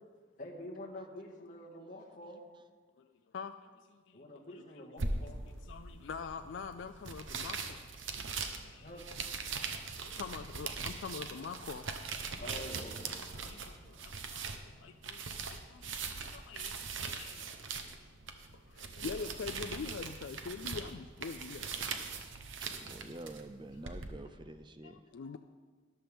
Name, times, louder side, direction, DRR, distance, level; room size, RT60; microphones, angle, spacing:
voice 1, 0.4-2.4 4.1-5.4 8.8-9.0 12.3-13.6 13.9-14.1 24.2-24.5 25.3-25.4, left 1 dB, 40° left, -2 dB, 1.8 m, -48 dB
voice 2, 3.0-5.2 5.5-7.8 8.1-11.9 13.2-17.5 18.7-21.9 22.8-23.0 23.8-24.3 24.8-25.4, left 5 dB, 70° left, 8 dB, 0.4 m, -45 dB
sound 1, 5.0-24.1, right 4 dB, 80° right, 0.9 m, -41 dB
voice 3, 22.8-25.0, right 2 dB, 25° right, 10 dB, 0.5 m, -47 dB
13.5 x 11.5 x 3.5 m, 1.5 s
head